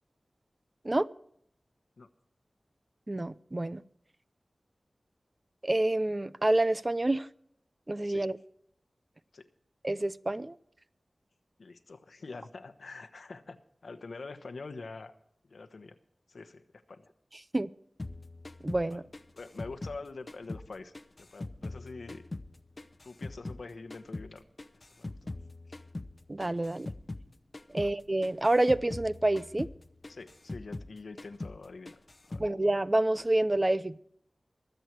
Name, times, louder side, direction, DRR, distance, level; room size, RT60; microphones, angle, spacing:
voice 1, 3.1-3.8 5.6-7.3 7.9-8.4 9.8-10.6 17.5-17.7 18.6-19.0 26.3-26.9 27.7-29.7 32.4-34.0, right 1 dB, 30° right, 15 dB, 0.5 m, -28 dB
voice 2, 11.6-13.6 13.8-15.1 15.5-16.0 16.3-17.1 18.9-19.0 19.3-20.9 21.2-22.2 23.0-24.4 25.0-25.3 27.7-27.9 30.1-32.4, left 3 dB, 85° left, 9 dB, 1.1 m, -45 dB
sound 1, 18.0-20.7 20.9-23.6 23.9-27.3 27.5-28.0 28.2-30.9 31.2-31.6 31.9-32.5, left 2 dB, 40° left, 0.8 m, -42 dB
24.0 x 8.1 x 4.6 m, 0.68 s
wide cardioid pair, 85°, 0 cm